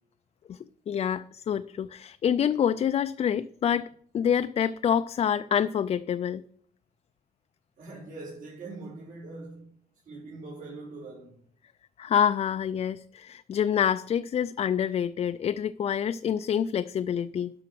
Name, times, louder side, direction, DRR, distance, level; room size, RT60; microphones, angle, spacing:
voice 1, 0.9-6.4 12.0-17.5, left 8 dB, 40° left, 0.4 m, -27 dB
voice 2, 7.8-9.7 10.0-11.4, right 3 dB, 60° right, 4.5 m, -42 dB
12.0 x 5.7 x 6.1 m
cardioid pair, 135°, 16 cm